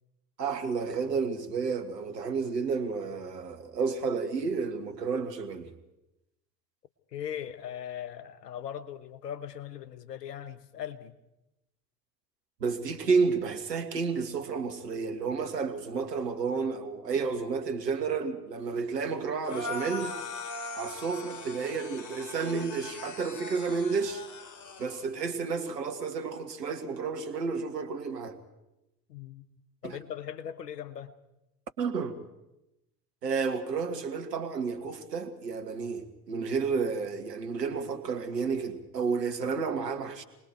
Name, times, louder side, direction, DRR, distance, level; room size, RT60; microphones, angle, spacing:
voice 1, 0.4-5.7 12.6-20.2 20.8-24.2 24.8-28.4 29.8-30.0 31.8-32.2 33.2-40.2, right 5 dB, 80° right, 1.8 m, -31 dB
voice 2, 7.1-11.2 29.1-31.1, left 9 dB, 80° left, 1.3 m, -39 dB
sound 1, 19.4-25.1, left 3 dB, 40° left, 3.2 m, -40 dB
28.0 x 20.5 x 4.5 m
figure-of-eight pair, 70°, 48 cm